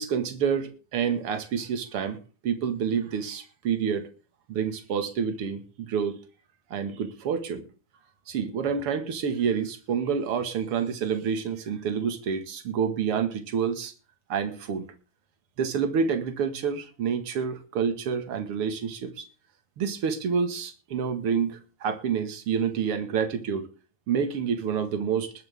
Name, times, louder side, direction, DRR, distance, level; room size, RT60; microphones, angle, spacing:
voice 1, 0.0-2.2 2.4-4.1 4.5-6.2 6.7-7.7 8.3-13.9 14.3-14.9 15.6-19.3 19.8-23.7 24.1-25.3, right 7 dB, 45° right, 2.2 m, -28 dB
20.0 x 10.5 x 3.6 m
omnidirectional pair, 4.2 m